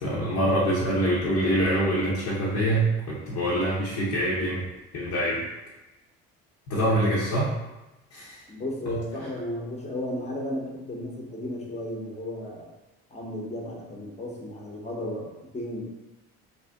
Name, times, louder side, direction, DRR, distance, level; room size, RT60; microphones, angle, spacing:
voice 1, 0.0-4.6 4.9-5.5 6.7-7.5 8.1-8.4 8.9-9.0, right 1 dB, 50° left, -7 dB, 0.8 m, -25 dB
voice 2, 8.5-12.7 13.1-15.9, left 1 dB, 20° left, -2 dB, 0.8 m, -34 dB
2.6 x 2.1 x 3.4 m, 1.0 s
supercardioid pair, 65°, 33 cm